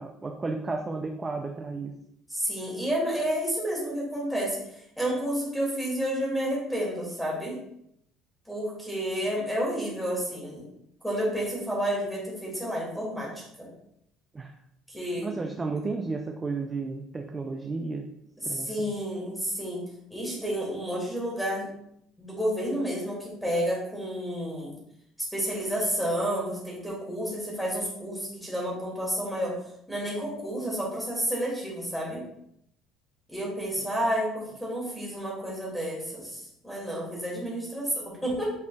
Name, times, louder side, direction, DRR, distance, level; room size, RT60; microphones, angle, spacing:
voice 1, 0.0-1.9 14.3-14.5 15.2-18.1 18.4-18.9, right 3 dB, 15° right, 3 dB, 0.4 m, -33 dB
voice 2, 2.3-7.6 8.5-10.7 11.0-13.3 13.6-13.7 14.9-15.3 18.4-19.8 20.1-21.7 22.2-24.7 25.3-29.5 29.9-32.2 33.3-38.5, equal, ahead, -4 dB, 2.1 m, -30 dB
8.1 x 5.2 x 2.2 m, 0.74 s
cardioid pair, 180°, 0 cm